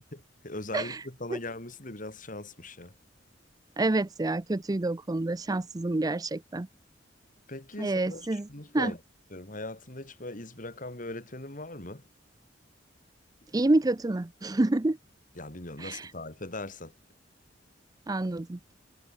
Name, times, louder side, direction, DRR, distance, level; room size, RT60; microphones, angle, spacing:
voice 1, 0.1-2.9 7.5-9.0 9.3-12.0 15.4-16.9, left 2 dB, 45° left, 3.7 m, -40 dB
voice 2, 3.8-6.7 7.8-8.5 8.7-8.9 13.5-15.0 15.8-16.1 18.1-18.7, right 2 dB, 20° right, 0.5 m, -28 dB
head